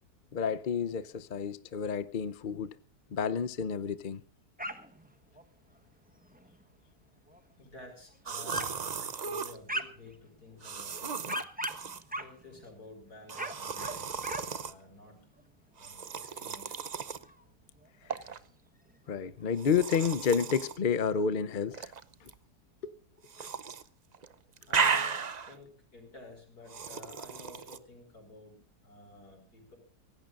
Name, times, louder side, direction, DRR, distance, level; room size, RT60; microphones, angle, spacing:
voice 1, 0.3-2.7 3.1-4.2 19.1-21.9 22.2-22.3 22.8-23.0 23.4-23.5, left 6 dB, 45° left, 0.7 m, -30 dB
sound 1, 4.6-5.1 5.4-5.5 6.1-6.6 7.3-7.4 7.9-8.0 8.5-8.8 9.2-10.1 10.7-12.8 13.2-14.5 14.8-15.1 15.4-15.5 15.8-15.9 16.5-17.4 17.8-17.9 18.1-18.2 19.1-19.2 19.4-19.5 19.7-20.4, right 1 dB, 5° right, 1.0 m, -39 dB
voice 2, 7.6-11.2 12.1-15.3 15.8-16.9 24.7-29.8, left 2 dB, 70° left, 6.0 m, -52 dB
sound 2, 8.3-9.6 10.6-12.0 13.3-14.7 15.8-17.2 18.1-18.4 19.6-20.8 21.7-22.3 23.3-23.8 24.1-25.6 26.7-27.8, right 6 dB, 45° right, 0.5 m, -35 dB
24.5 x 17.5 x 2.5 m
omnidirectional pair, 1.7 m